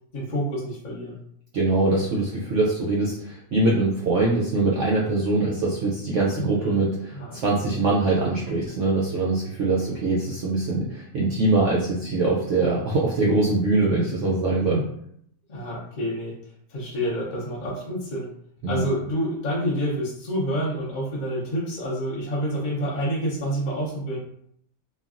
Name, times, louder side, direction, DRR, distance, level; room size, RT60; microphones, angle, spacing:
voice 1, 0.1-1.2 6.4-6.8 7.1-7.9 8.2-8.4 15.5-16.4 16.7-18.3 18.7-24.2, equal, 55° left, -3 dB, 0.5 m, -28 dB
voice 2, 1.5-14.8 18.6-18.8, right 2 dB, 70° right, -4 dB, 0.7 m, -23 dB
3.2 x 2.2 x 2.4 m, 0.69 s
omnidirectional pair, 1.8 m